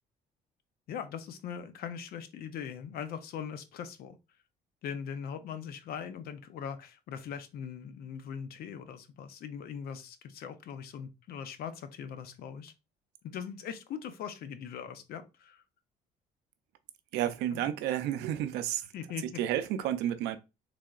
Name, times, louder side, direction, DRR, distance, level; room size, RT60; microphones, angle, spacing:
voice 1, 0.9-4.2 4.8-12.7 13.2-15.6 18.9-19.4, left 7 dB, 65° left, 0.6 m, -41 dB
voice 2, 17.1-18.8 19.2-20.4, right 11 dB, 90° right, 0.5 m, -31 dB
3.7 x 3.4 x 2.3 m
cardioid pair, 110°, 17 cm